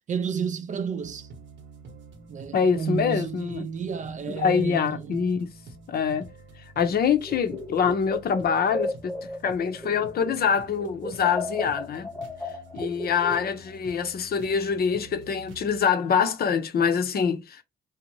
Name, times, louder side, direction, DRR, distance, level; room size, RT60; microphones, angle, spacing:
voice 1, 0.1-1.3 2.3-5.2, right 6 dB, 40° right, 0.4 m, -31 dB
sound 1, 1.0-15.8, right 2 dB, 70° right, 0.9 m, -48 dB
voice 2, 2.5-3.7 4.4-5.5 5.9-6.3 6.8-9.1 9.4-12.1 12.7-17.6, left 6 dB, 50° left, 0.6 m, -25 dB
Alien Transmission, 7.2-10.5 10.7-13.8, left 1 dB, 5° left, 1.0 m, -35 dB
2.6 x 2.0 x 2.9 m
cardioid pair, 90°, 20 cm